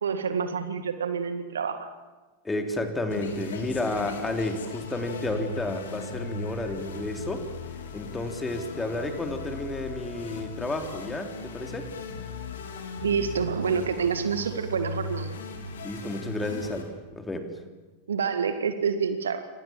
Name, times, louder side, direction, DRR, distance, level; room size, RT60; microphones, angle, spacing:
voice 1, 0.0-1.9 13.0-15.4 18.1-19.5, right 6 dB, 65° right, 10 dB, 2.0 m, -28 dB
voice 2, 2.4-7.5 7.9-11.9 15.8-17.5, left 2 dB, 10° left, 5 dB, 3.5 m, -31 dB
sound 1, 3.1-16.8, left 3 dB, 65° left, 4.1 m, -38 dB
28.0 x 26.0 x 7.5 m, 1.2 s
figure-of-eight pair, 90°, 0 cm